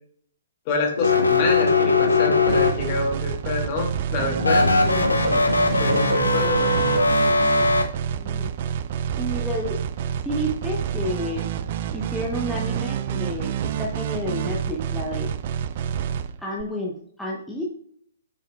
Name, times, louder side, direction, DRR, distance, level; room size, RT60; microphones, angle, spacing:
voice 1, 0.7-5.5 5.8-6.9, left 3 dB, 35° left, 0 dB, 2.2 m, -27 dB
sound 1, 1.0-3.1 4.4-7.8, left 3 dB, 80° left, 1.1 m, -20 dB
sound 2, 2.5-16.6, right 9 dB, 40° right, 0.4 m, -28 dB
voice 2, 8.1-8.5 9.2-9.8 10.2-11.5 11.9-15.3 16.4-17.6, equal, 5° left, -4 dB, 0.9 m, -30 dB
7.5 x 5.7 x 2.3 m, 0.64 s
figure-of-eight pair, 125°, 0 cm